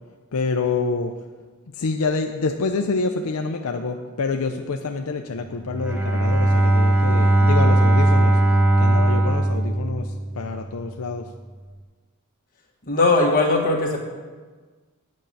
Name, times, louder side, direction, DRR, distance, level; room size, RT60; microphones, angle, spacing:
voice 1, 0.3-1.2 1.7-8.4 8.8-11.3, left 4 dB, 75° left, 4 dB, 0.6 m, -27 dB
Bowed string instrument, 5.6-10.5, right 1 dB, 10° right, 1.0 m, -18 dB
voice 2, 12.9-14.0, left 2 dB, 40° left, -2 dB, 1.6 m, -19 dB
9.2 x 5.4 x 7.4 m, 1.4 s
head